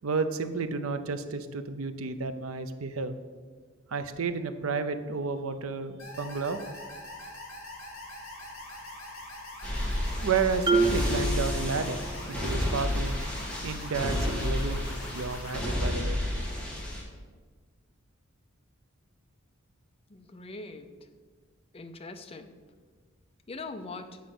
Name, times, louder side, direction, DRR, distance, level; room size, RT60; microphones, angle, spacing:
voice 1, 0.0-3.1 3.9-6.6 10.2-12.0 12.3-13.2 13.6-16.2, right 4 dB, 80° right, 10 dB, 0.6 m, -31 dB
sound 1, 6.0-15.6, left 1 dB, 65° left, 2.9 m, -43 dB
sound 2, 9.6-17.0, left 1 dB, 5° left, 1.7 m, -31 dB
Marimba xylophone, 10.7-12.4, right 3 dB, 25° right, 0.5 m, -28 dB
voice 2, 20.1-20.9 21.7-22.5 23.5-24.2, left 3 dB, 30° left, 7 dB, 0.6 m, -41 dB
8.4 x 5.0 x 6.0 m, 1.5 s
head